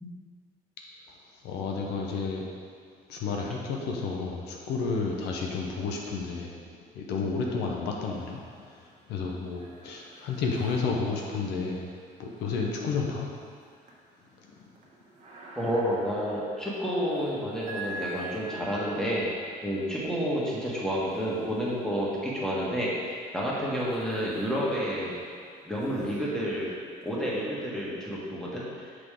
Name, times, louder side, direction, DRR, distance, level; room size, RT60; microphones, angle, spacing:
voice 1, 1.4-2.4 3.1-6.6 6.9-11.9 12.2-13.3 14.5-14.6, left 4 dB, 80° left, -1 dB, 0.9 m, -31 dB
sound 1, 8.1-8.7 9.1-22.3 22.9-27.4, right 1 dB, 45° right, 1.2 m, -47 dB
voice 2, 15.5-19.3 19.6-25.1 25.6-26.7 27.0-28.6, equal, 5° left, -6 dB, 1.6 m, -30 dB
6.1 x 5.0 x 3.8 m, 2.2 s
cardioid pair, 110°, 17 cm